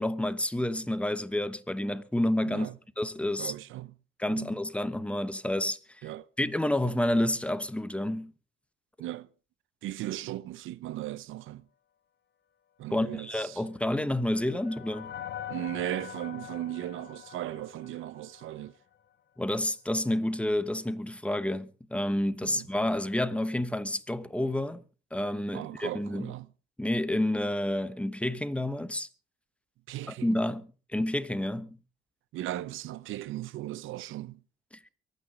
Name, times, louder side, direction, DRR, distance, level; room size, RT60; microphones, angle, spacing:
voice 1, 0.0-2.7 3.0-3.5 4.2-5.8 6.4-8.3 12.9-15.1 19.4-24.8 25.1-26.3 26.8-29.1 30.2-31.8, left 1 dB, 5° left, 1.3 m, -29 dB
voice 2, 3.4-3.9 4.3-4.6 6.0-6.3 9.0-9.3 9.8-11.7 12.8-13.6 15.5-18.7 22.4-22.7 25.5-26.5 29.9-30.4 32.3-34.4, right 14 dB, 85° right, 0.6 m, -37 dB
sound 1, 13.5-18.8, left 10 dB, 60° left, 1.3 m, -44 dB
23.5 x 9.3 x 5.1 m
cardioid pair, 90°, 20 cm